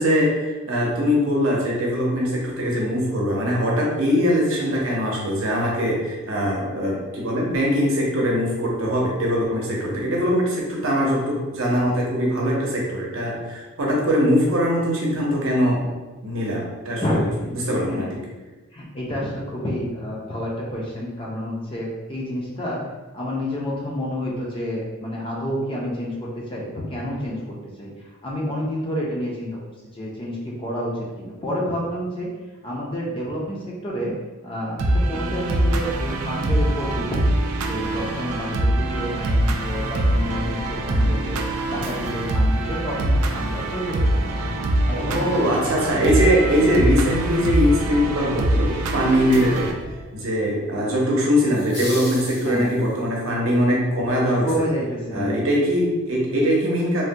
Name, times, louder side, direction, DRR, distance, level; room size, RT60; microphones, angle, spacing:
voice 1, 0.0-15.9 16.2-17.2 17.5-18.1 44.9-49.7 50.1-54.5 55.1-57.0, equal, 60° right, -3 dB, 0.7 m, -22 dB
voice 2, 17.0-17.5 17.8-18.1 18.7-22.8 23.1-27.9 28.2-29.6 29.9-32.3 32.6-34.1 34.4-37.4 37.7-41.4 41.7-44.4 44.9-45.3 52.4-52.7 54.4-55.4, equal, 25° left, -3 dB, 0.4 m, -29 dB
sound 1, 34.8-49.7, right 1 dB, 85° right, 0.4 m, -23 dB
sound 2, 35.5-50.1, equal, 70° left, 0.6 m, -38 dB
sound 3, 51.5-53.1, left 1 dB, 90° left, 1.2 m, -36 dB
3.3 x 2.2 x 2.7 m, 1.2 s
head